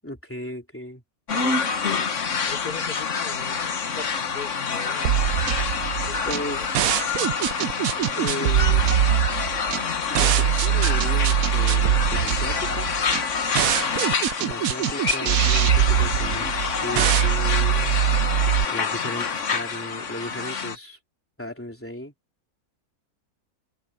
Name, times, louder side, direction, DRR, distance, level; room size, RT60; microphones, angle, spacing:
voice 1, 0.0-1.0 6.2-6.7 8.1-8.8 10.1-12.9 14.4-18.0 18.7-21.0 21.4-22.1, equal, 10° left, 3.2 m, -35 dB
sound 1, 1.3-20.8, left 5 dB, 55° left, 1.6 m, -27 dB
voice 2, 2.4-3.6 3.9-5.2 6.0-6.7, left 4 dB, 90° left, 4.8 m, -39 dB
sound 2, 5.0-18.6, right 11 dB, 70° right, 1.1 m, -22 dB
omnidirectional pair, 1.6 m